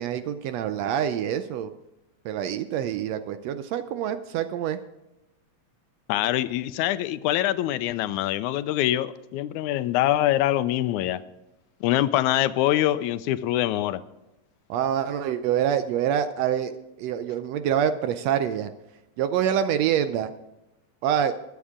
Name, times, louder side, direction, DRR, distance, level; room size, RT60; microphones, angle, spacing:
voice 1, 0.0-1.7 2.3-4.8 14.7-16.7 17.0-18.7 19.2-20.3 21.0-21.3, right 9 dB, 75° right, 10 dB, 1.6 m, -26 dB
voice 2, 6.1-11.2 11.8-14.0, left 13 dB, 85° left, 14 dB, 2.0 m, -24 dB
21.0 x 8.2 x 3.6 m, 0.98 s
omnidirectional pair, 3.4 m